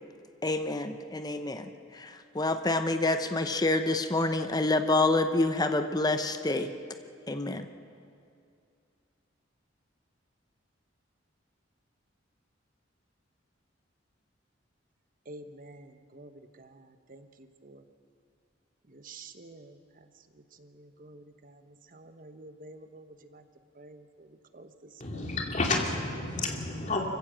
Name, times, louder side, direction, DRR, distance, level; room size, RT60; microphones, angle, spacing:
voice 1, 0.4-6.7 7.3-7.7, left 2 dB, 20° left, 8 dB, 0.8 m, -27 dB
voice 2, 15.3-16.3 16.6-17.8 18.9-19.8 20.6-21.6 21.9-23.1 23.3-23.4 23.8-24.3 24.5-24.7 25.1-25.4, right 2 dB, 45° right, 9 dB, 1.0 m, -49 dB
voice 3, 25.0-27.0, left 3 dB, 40° left, 1 dB, 2.6 m, -30 dB
25.0 x 15.5 x 7.6 m, 2.4 s
head